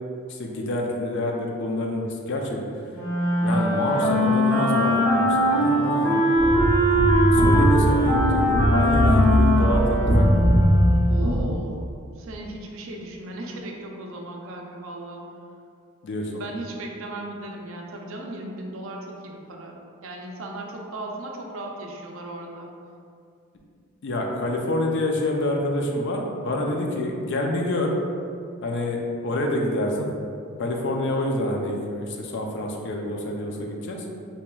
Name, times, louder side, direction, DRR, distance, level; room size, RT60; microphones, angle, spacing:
voice 1, 0.3-2.6 3.4-6.2 7.3-9.8 10.2-10.3 16.0-16.4 24.0-27.9 28.6-30.1 30.6-34.0, left 1 dB, 55° left, 1 dB, 0.4 m, -27 dB
Wind instrument woodwind instrument, 2.9-11.1, equal, 70° left, 1.4 m, -21 dB
sound 1, 6.4-11.4, right 1 dB, 20° left, 0.7 m, -20 dB
voice 2, 11.1-11.8 12.2-15.2 16.4-19.7 20.0-22.7, right 1 dB, 60° right, 0 dB, 0.5 m, -36 dB
4.4 x 2.9 x 2.3 m, 2.4 s
head